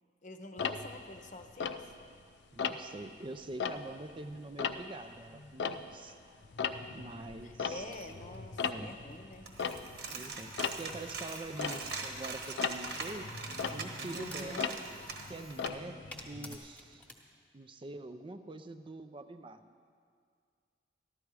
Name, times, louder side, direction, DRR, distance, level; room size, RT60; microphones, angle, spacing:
voice 1, 0.2-1.9 7.4-9.5 11.7-11.8 14.1-14.8, left 2 dB, 45° left, 6 dB, 0.8 m, -47 dB
Tick-tock, 0.6-2.2 2.6-3.0 3.4-6.2 6.4-16.6, left 6 dB, 80° left, 0.5 m, -38 dB
voice 2, 2.5-6.2 6.9-8.1 8.6-8.9 10.1-13.3 13.7-14.7 15.3-16.0 16.3-17.0 17.5-19.8, right 2 dB, 30° right, 9 dB, 0.5 m, -45 dB
sound 1, 7.2-17.1, equal, 10° left, 1.2 m, -56 dB
Coin (dropping), 9.5-15.7, right 4 dB, 65° right, 1.3 m, -42 dB
13.5 x 12.0 x 4.7 m, 2.1 s
head